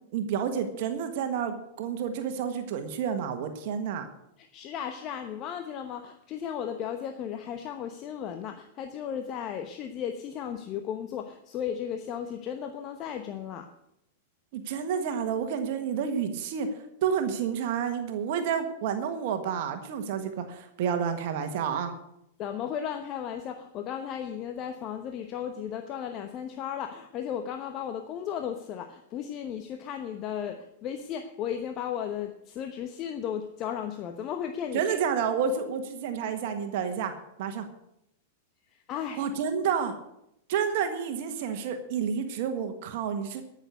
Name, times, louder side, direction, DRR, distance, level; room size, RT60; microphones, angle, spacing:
voice 1, 0.1-4.1 14.5-21.9 34.7-37.1 37.4-37.7 39.2-39.9 40.5-43.4, right 7 dB, 55° right, 7 dB, 1.4 m, -30 dB
voice 2, 4.4-13.7 22.4-34.9 38.7-39.2, left 9 dB, 40° left, 7 dB, 1.0 m, -35 dB
13.5 x 6.6 x 8.1 m, 0.81 s
hypercardioid pair, 100°, 0 cm